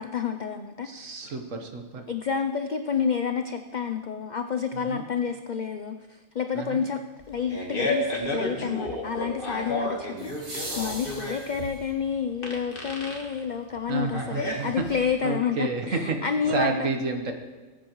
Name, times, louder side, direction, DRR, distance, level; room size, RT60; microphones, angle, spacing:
voice 1, 0.0-1.1 2.1-7.0 7.3-16.9, left 6 dB, 75° left, 7 dB, 0.4 m, -29 dB
voice 2, 0.8-2.0 4.7-5.0 6.5-6.8 13.9-14.8 15.2-16.2 16.4-17.3, right 4 dB, 70° right, 4 dB, 1.5 m, -30 dB
sound 1, 4.5-4.6 10.2-12.0 14.2-14.3, right 1 dB, 55° right, 2.4 m, -39 dB
Fart, 7.2-15.2, left 1 dB, 40° left, 1.7 m, -32 dB
19.0 x 9.2 x 3.1 m, 1.3 s
omnidirectional pair, 1.4 m